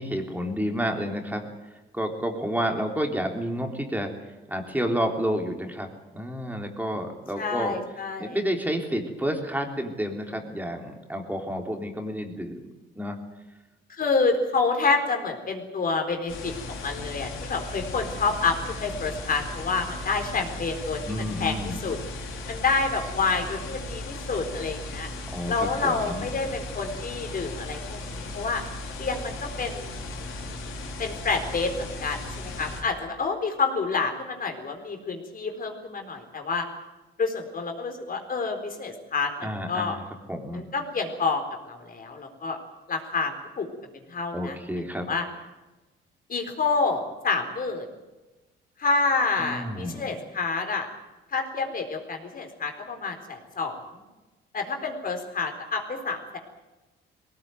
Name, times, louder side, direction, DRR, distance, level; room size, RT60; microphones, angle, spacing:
voice 1, 0.0-1.4 1.9-4.1 4.5-7.8 8.2-12.7 12.9-13.2 21.1-21.8 25.3-26.3 39.4-40.0 40.3-40.6 44.3-45.1 49.4-50.0, equal, 10° right, 3 dB, 3.6 m, -30 dB
voice 2, 7.4-8.4 13.9-25.1 25.5-28.6 29.0-30.1 31.0-36.7 37.2-40.0 40.5-42.6 42.9-43.7 43.9-44.6 45.1-45.3 46.3-47.9 48.8-50.9 51.3-54.0 54.5-56.4, left 4 dB, 45° left, 4 dB, 4.2 m, -28 dB
sound 1, 16.3-32.8, left 2 dB, 90° left, 4.0 m, -37 dB
20.0 x 18.0 x 9.3 m, 1.1 s
cardioid pair, 90°, 20 cm